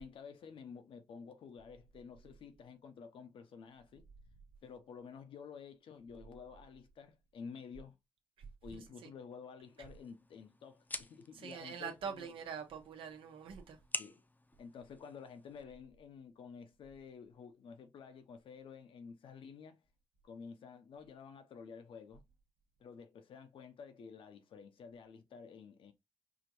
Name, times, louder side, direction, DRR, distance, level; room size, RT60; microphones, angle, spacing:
voice 1, 0.0-4.1 4.6-8.0 8.6-12.3 14.0-14.2 14.6-19.8 20.2-22.2 22.8-25.9, left 6 dB, 80° left, 0.8 m, -51 dB
voice 2, 8.7-9.1 9.8-9.9 11.3-13.8, right 6 dB, 85° right, 1.0 m, -45 dB
sound 1, 9.6-15.6, left 2 dB, 20° left, 0.6 m, -48 dB
4.9 x 2.5 x 3.0 m
cardioid pair, 55°, 9 cm